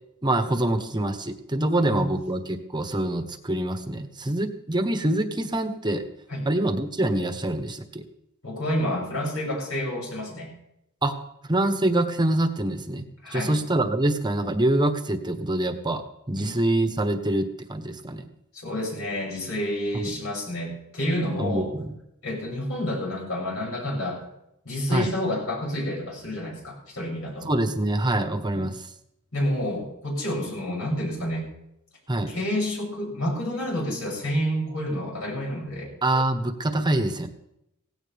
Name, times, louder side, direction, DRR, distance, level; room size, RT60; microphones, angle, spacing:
voice 1, 0.2-6.0 6.4-8.0 11.0-11.1 11.5-16.0 16.3-18.2 19.9-20.1 21.4-21.9 24.9-25.1 27.4-28.8 32.1-32.3 36.0-37.3, right 1 dB, 20° right, 7 dB, 1.2 m, -25 dB
voice 2, 1.8-2.1 6.3-6.5 8.4-10.5 13.2-13.5 16.3-16.6 18.5-21.7 22.2-24.2 24.6-27.5 28.5-28.7 29.3-31.4 32.3-35.9, left 1 dB, 70° left, -3 dB, 7.5 m, -29 dB
17.5 x 16.5 x 3.5 m, 0.80 s
head